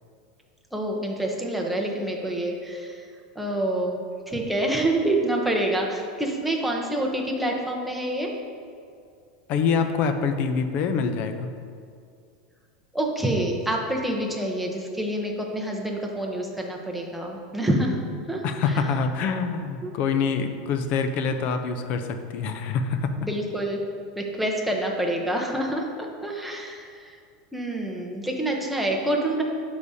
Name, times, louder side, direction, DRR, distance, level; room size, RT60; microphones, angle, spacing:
voice 1, 0.7-3.1 3.4-8.3 12.9-18.0 18.3-18.4 18.7-18.8 19.8-19.9 23.2-23.8 24.2-27.2 27.5-29.4, right 1 dB, ahead, -1 dB, 0.8 m, -27 dB
voice 2, 9.5-11.5 18.4-23.1, left 5 dB, 40° left, 8 dB, 0.6 m, -25 dB
12.0 x 4.9 x 2.7 m, 2.4 s
supercardioid pair, 150°, 4 cm